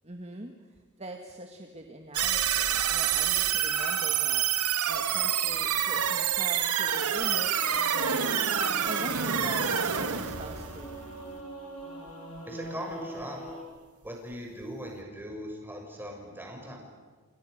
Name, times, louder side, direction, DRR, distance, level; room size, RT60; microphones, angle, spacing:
voice 1, 0.0-4.4 4.9-8.4 8.8-10.9, right 2 dB, 30° right, 4 dB, 1.9 m, -42 dB
sound 1, 2.1-11.4, right 8 dB, 90° right, 2.0 m, -27 dB
Singing / Musical instrument, 8.0-13.6, right 1 dB, 75° left, 7.5 m, -42 dB
voice 2, 12.4-13.4 14.0-16.8, equal, 10° right, 1 dB, 6.5 m, -39 dB
29.5 x 26.5 x 6.7 m, 1.4 s
head